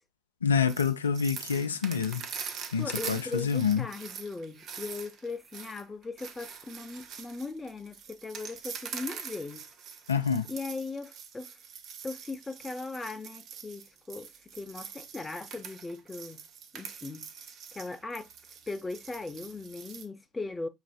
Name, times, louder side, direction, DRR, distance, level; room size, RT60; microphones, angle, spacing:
voice 1, 0.4-2.2 2.7-3.8 10.1-10.5, left 6 dB, 85° left, 0.4 m, -27 dB
sound 1, 0.7-20.1, right 7 dB, 50° right, 0.6 m, -44 dB
voice 2, 2.8-9.7 10.5-11.5 12.0-16.4 16.7-17.3 17.7-18.3 18.7-20.7, left 3 dB, 20° left, 0.6 m, -39 dB
6.2 x 3.3 x 2.2 m
figure-of-eight pair, 60°, 0 cm